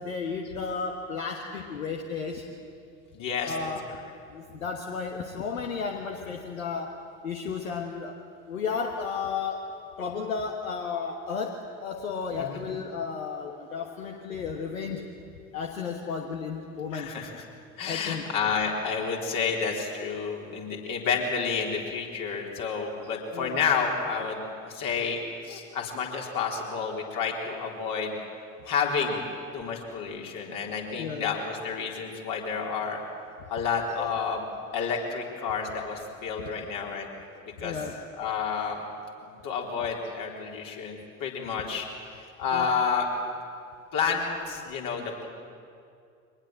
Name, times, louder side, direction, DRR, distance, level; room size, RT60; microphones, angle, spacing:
voice 1, 0.0-2.4 3.4-3.8 4.3-6.9 7.2-8.2 8.5-9.6 10.0-15.1 15.5-17.1 17.9-18.3 23.3-23.6 31.0-31.3 33.9-34.1 36.5-36.6 37.6-38.0 42.5-42.7, left 5 dB, 75° left, 2 dB, 1.4 m, -33 dB
voice 2, 3.1-3.6 12.4-12.6 16.9-17.4 17.8-25.2 25.4-28.2 28.7-29.2 29.5-33.0 33.5-34.4 34.7-37.1 37.6-37.8 38.2-38.8 39.4-41.9 42.1-43.1 43.9-45.3, left 5 dB, 50° left, 0 dB, 3.9 m, -30 dB
23.5 x 19.5 x 7.6 m, 2.3 s
figure-of-eight pair, 65°, 41 cm